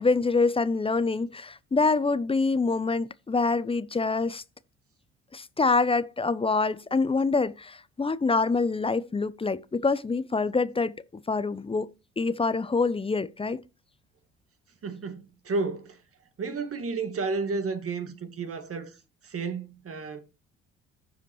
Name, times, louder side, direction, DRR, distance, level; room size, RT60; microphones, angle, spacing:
voice 1, 0.0-4.4 5.3-10.9 11.3-11.9 12.2-13.6, left 4 dB, 15° left, 0.6 m, -25 dB
voice 2, 14.8-16.0 16.4-18.9 19.2-20.2, right 4 dB, 45° right, 1.8 m, -32 dB
15.0 x 5.0 x 3.1 m
hypercardioid pair, 55°, 32 cm